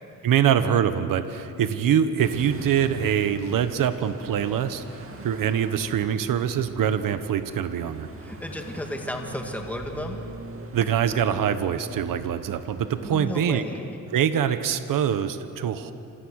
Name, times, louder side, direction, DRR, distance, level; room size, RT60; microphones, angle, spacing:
voice 1, 0.2-8.1 10.7-13.6 14.1-15.9, right 9 dB, 80° right, 10 dB, 1.2 m, -24 dB
sound 1, 2.2-13.2, right 2 dB, 40° right, 2.7 m, -42 dB
voice 2, 8.2-10.2 13.0-14.0, left 1 dB, 5° left, 2 dB, 2.2 m, -33 dB
28.0 x 27.5 x 6.5 m, 2.8 s
cardioid pair, 120°, 32 cm